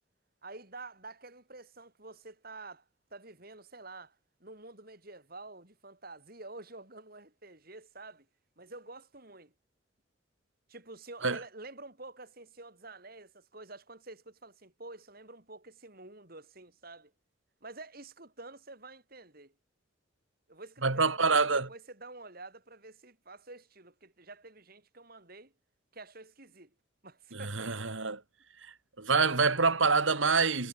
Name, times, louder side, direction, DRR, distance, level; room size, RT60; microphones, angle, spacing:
voice 1, 0.4-2.9 3.1-8.3 8.6-9.5 10.7-17.1 17.6-19.5 20.5-25.5 25.9-26.7 27.0-27.9, right 2 dB, 50° right, 5.5 m, -49 dB
voice 2, 20.8-21.7 27.3-28.2 29.0-30.7, right 4 dB, 80° right, 2.5 m, -26 dB
head